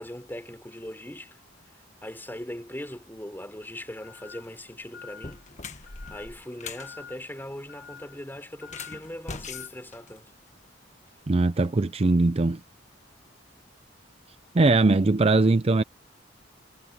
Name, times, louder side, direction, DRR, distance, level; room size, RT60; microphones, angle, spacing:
voice 1, 0.0-1.4 2.0-5.4 5.7-10.3, left 1 dB, 10° left, 3.7 m, -40 dB
sound 1, 3.7-9.7, left 7 dB, 70° left, 5.8 m, -49 dB
sound 2, 4.3-4.6 5.1-6.9 8.6-10.7, left 4 dB, 40° left, 1.3 m, -41 dB
voice 2, 11.3-12.6 14.5-15.8, right 3 dB, 30° right, 0.5 m, -21 dB
head